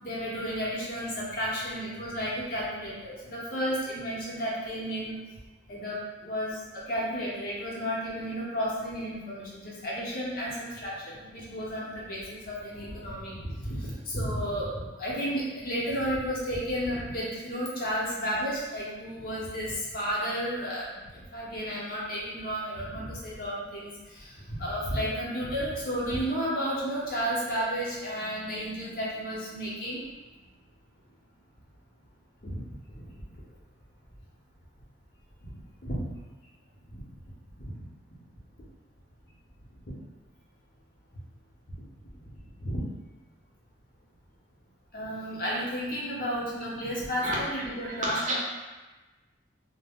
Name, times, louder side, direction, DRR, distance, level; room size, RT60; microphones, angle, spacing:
voice 1, 0.0-5.2 5.7-30.0 32.4-33.4 35.4-35.5 35.8-36.2 36.9-37.0 37.6-37.8 39.9-40.0 42.2-42.8 44.9-48.3, equal, 50° left, -6 dB, 0.7 m, -33 dB
voice 2, 47.8-48.3, right 1 dB, 40° right, -5 dB, 0.5 m, -30 dB
2.2 x 2.1 x 3.5 m, 1.2 s
head